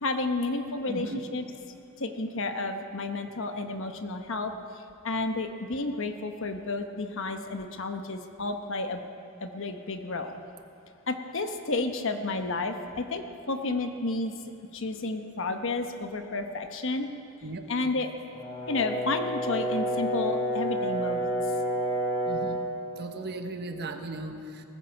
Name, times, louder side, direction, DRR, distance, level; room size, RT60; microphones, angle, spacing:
voice 1, 0.0-1.4 2.0-9.0 9.4-10.4 11.1-14.3 14.7-17.1 17.7-18.1 18.7-21.3, left 3 dB, 65° left, 6 dB, 1.1 m, -31 dB
voice 2, 0.9-1.2 17.4-17.6 22.2-22.6 23.0-24.6, right 2 dB, 50° right, 5 dB, 1.1 m, -36 dB
Brass instrument, 18.3-22.6, equal, 45° left, 5.0 m, -29 dB
18.5 x 14.5 x 5.3 m, 2.6 s
head